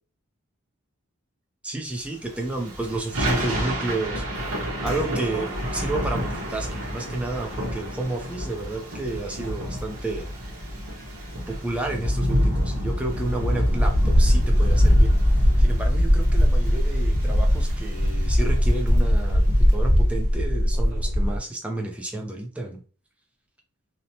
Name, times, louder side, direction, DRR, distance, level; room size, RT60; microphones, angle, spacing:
voice 1, 1.6-4.2 4.8-10.3 11.5-15.1 15.6-22.8, right 2 dB, 5° right, 1 dB, 0.4 m, -31 dB
Thunder / Rain, 2.3-19.8, equal, 75° right, 0.9 m, -29 dB
sound 1, 13.7-21.4, equal, 35° right, 1.2 m, -19 dB
2.8 x 2.0 x 2.7 m, 0.39 s
head